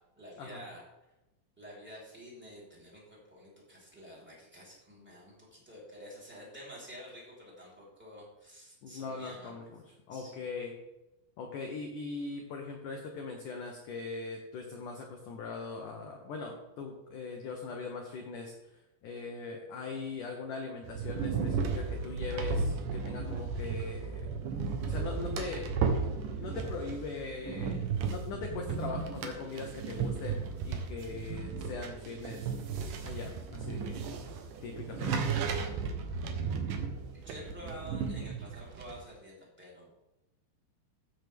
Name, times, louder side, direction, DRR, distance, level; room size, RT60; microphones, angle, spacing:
voice 1, 0.1-0.8 1.6-9.6 10.1-10.4 37.1-39.9, equal, 5° right, -6 dB, 3.0 m, -49 dB
voice 2, 8.8-9.8 10.1-10.7 11.4-18.5 19.0-24.3 24.8-25.7 26.4-27.8 28.1-32.5 33.0-34.0 34.6-35.4, left 4 dB, 85° left, 2 dB, 1.8 m, -40 dB
sound 1, 20.8-39.0, right 5 dB, 85° right, 1.8 m, -35 dB
14.5 x 7.9 x 3.5 m, 0.99 s
omnidirectional pair, 5.3 m